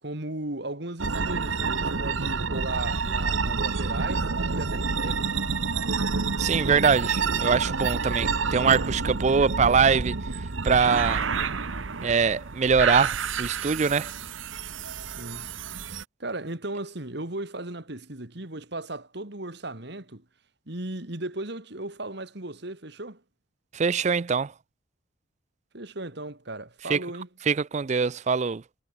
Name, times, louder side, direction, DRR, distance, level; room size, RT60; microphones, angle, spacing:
voice 1, 0.0-5.2 15.0-15.5 16.2-20.2 20.7-23.2 25.7-27.3, right 2 dB, 55° right, 2.5 m, -36 dB
sound 1, 1.0-16.0, right 4 dB, 80° right, 1.2 m, -28 dB
voice 2, 6.4-10.2 10.6-11.3 12.0-14.1 23.7-24.5 26.9-27.0 27.5-28.6, right 5 dB, 35° right, 0.4 m, -23 dB
head